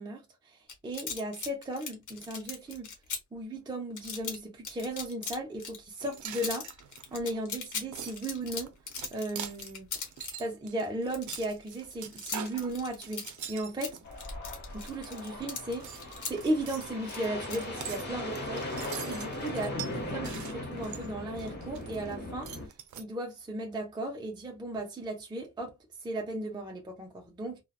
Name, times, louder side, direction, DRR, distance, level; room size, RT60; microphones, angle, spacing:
voice 1, 0.0-2.9 3.3-6.7 7.1-8.7 9.1-9.9 10.4-14.0 14.7-19.9 20.1-22.5 23.0-25.7 26.0-27.6, right 1 dB, 15° right, 0.4 m, -36 dB
sound 1, 0.7-3.2 4.0-4.4 4.6-5.8 6.0-6.1 6.4-10.4 11.1-13.5 13.8-16.3 17.1-17.5, left 5 dB, 75° left, 0.9 m, -39 dB
sound 2, 6.0-14.2 14.7-15.5 15.8-22.1 22.4-23.0, right 9 dB, 70° right, 0.5 m, -44 dB
sound 3, 14.0-22.7, left 1 dB, 35° left, 0.7 m, -39 dB
2.7 x 2.0 x 2.3 m
cardioid pair, 115°, 31 cm